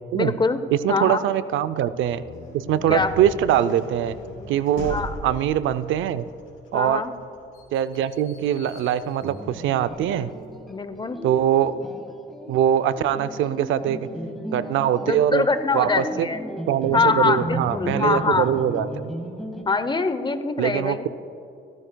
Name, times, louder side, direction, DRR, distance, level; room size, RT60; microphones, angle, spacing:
voice 1, 0.1-0.6 0.9-1.2 2.9-3.1 4.8-5.2 6.7-7.1 10.7-11.2 15.0-16.4 16.9-18.5 19.7-21.0, left 4 dB, 25° left, 11 dB, 0.7 m, -23 dB
voice 2, 0.7-2.2 2.5-4.2 4.5-5.0 5.2-6.3 6.7-7.0 7.7-10.3 11.2-11.7 12.5-14.1 14.5-15.4 15.7-16.3 16.7-19.1 20.6-21.1, right 10 dB, 80° right, 14 dB, 0.5 m, -22 dB
sound 1, 1.9-10.5, left 2 dB, 85° left, 2.6 m, -40 dB
sound 2, 9.2-19.6, equal, ahead, 1.2 m, -35 dB
15.5 x 13.5 x 2.2 m, 2.7 s
cardioid pair, 90°, 20 cm